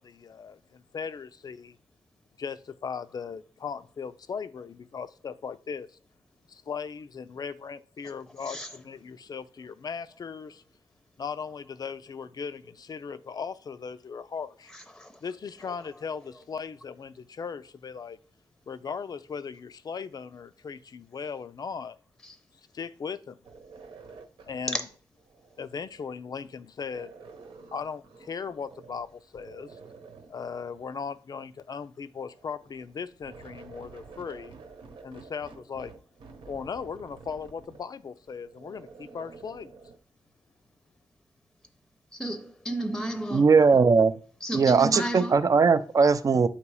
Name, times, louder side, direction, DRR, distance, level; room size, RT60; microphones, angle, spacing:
voice 1, 0.0-1.8 2.4-6.0 6.5-10.6 11.2-14.7 15.2-18.2 18.7-22.0 22.7-23.4 24.5-24.8 25.6-27.1 27.7-29.8 30.3-34.5 35.0-35.9 36.5-39.7, left 6 dB, 50° left, 0.5 m, -38 dB
voice 2, 14.7-15.2 15.7-15.8 22.2-22.3 24.7-24.8 42.1-43.5 44.4-45.4, right 1 dB, 5° left, 0.7 m, -33 dB
sound 1, 23.4-26.2 26.9-29.1 29.3-31.1 32.2-40.0, right 4 dB, 75° right, 1.1 m, -50 dB
voice 3, 43.3-44.1 44.5-46.5, right 5 dB, 40° right, 0.5 m, -19 dB
8.1 x 3.0 x 4.8 m
wide cardioid pair, 110°, 9 cm